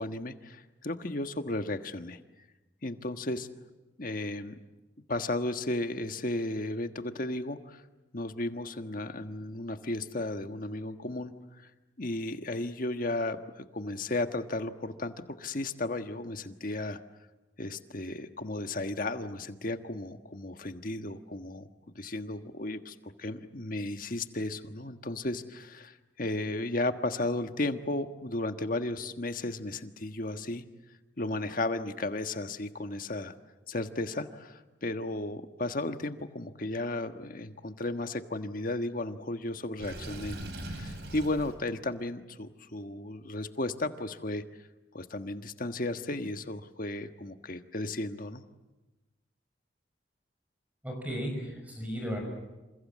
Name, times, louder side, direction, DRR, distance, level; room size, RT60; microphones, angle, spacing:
voice 1, 0.0-2.2 2.8-3.5 4.0-4.5 5.1-7.8 8.1-11.3 12.0-17.0 17.6-21.7 21.9-30.6 31.2-33.3 33.7-44.4 44.9-48.4, left 2 dB, 50° left, 8 dB, 1.5 m, -34 dB
Water / Sink (filling or washing), 39.8-41.6, right 1 dB, 65° right, 3.8 m, -40 dB
voice 2, 50.8-52.2, equal, 10° right, 2 dB, 6.0 m, -35 dB
28.0 x 27.5 x 7.6 m, 1.1 s
head